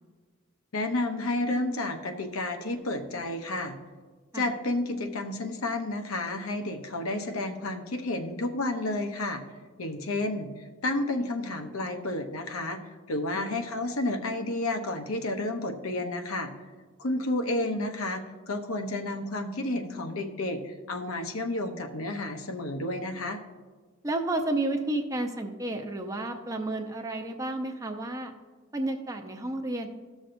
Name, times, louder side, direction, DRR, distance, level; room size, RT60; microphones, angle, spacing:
voice 1, 0.7-3.8 4.3-9.4 9.8-12.8 13.1-16.5 17.0-23.4, left 2 dB, 80° left, 5 dB, 0.8 m, -31 dB
voice 2, 24.0-28.3 28.7-29.9, right 2 dB, 15° right, 4 dB, 0.6 m, -31 dB
14.0 x 6.2 x 2.6 m, 1.4 s
head